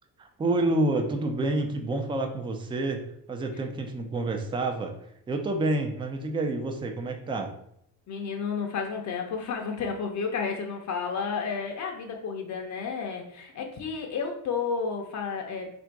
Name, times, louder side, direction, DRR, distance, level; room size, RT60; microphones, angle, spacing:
voice 1, 0.2-4.9 5.3-7.5, right 2 dB, 15° right, 4 dB, 0.4 m, -28 dB
voice 2, 8.1-15.7, left 5 dB, 45° left, 2 dB, 0.6 m, -31 dB
3.6 x 2.6 x 4.4 m, 0.71 s
cardioid pair, 135°, 39 cm